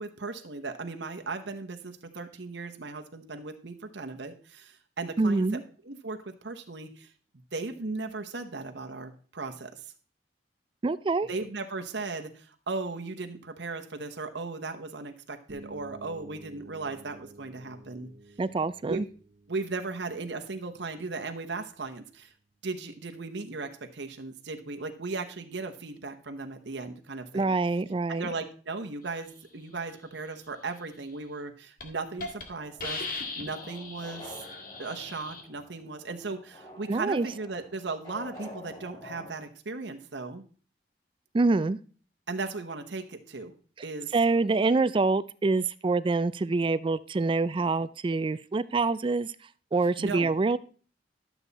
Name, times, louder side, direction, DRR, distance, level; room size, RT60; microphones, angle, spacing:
voice 1, 0.0-5.4 5.9-7.1 7.5-9.8 11.3-18.1 18.9-19.0 19.5-22.3 22.6-27.5 28.2-34.4 34.8-40.4 42.3-43.5 43.8-44.1 50.0-50.3, right 3 dB, 75° right, 5 dB, 1.0 m, -37 dB
voice 2, 5.2-5.6 10.8-11.3 18.4-19.1 27.3-28.3 36.9-37.3 41.3-41.8 44.1-49.3 49.7-50.6, right 3 dB, 30° right, 17 dB, 0.3 m, -26 dB
sound 1, 15.5-23.2, right 2 dB, 55° right, 1.6 m, -53 dB
Hiss, 31.2-31.4 31.8-31.9 32.2-32.4 32.8-35.4, left 3 dB, 50° left, 1.8 m, -38 dB
sound 2, 32.2-39.3, left 2 dB, 20° left, 3.4 m, -48 dB
12.0 x 7.1 x 4.1 m, 0.41 s
head